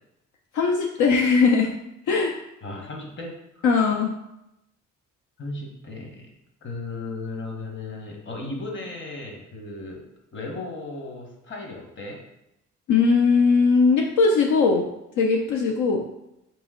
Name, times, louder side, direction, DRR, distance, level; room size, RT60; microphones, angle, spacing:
voice 1, 0.5-1.7 2.1-2.3 3.6-4.1 12.9-14.9 15.2-16.0, left 4 dB, 75° left, 1 dB, 0.5 m, -19 dB
voice 2, 2.6-3.6 5.4-6.3 6.6-10.0 10.3-12.2, left 2 dB, 40° left, 1 dB, 1.1 m, -35 dB
3.6 x 3.0 x 3.6 m, 0.87 s
cardioid pair, 90°, 30 cm